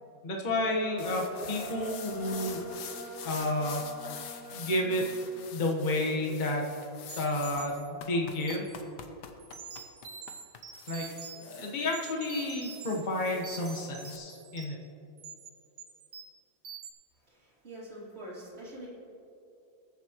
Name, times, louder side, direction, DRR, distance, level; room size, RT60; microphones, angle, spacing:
voice 1, 0.2-2.6 3.2-3.8 4.5-5.0 5.5-6.6 7.1-8.7 10.9-11.1 11.4-14.8, left 1 dB, 30° left, -1 dB, 1.1 m, -31 dB
sound 1, 0.6-5.7, right 1 dB, 10° right, 2.0 m, -43 dB
sound 2, 1.0-14.2, left 8 dB, 65° left, 1.2 m, -46 dB
sound 3, 7.1-8.8 9.4-11.6 11.9-13.0 13.2-14.8 15.2-15.5 15.8-16.4 16.6-16.9, right 7 dB, 60° right, 1.3 m, -46 dB
voice 2, 17.3-18.9, right 1 dB, 30° right, -7 dB, 3.0 m, -45 dB
21.0 x 7.4 x 3.0 m, 2.7 s
omnidirectional pair, 2.1 m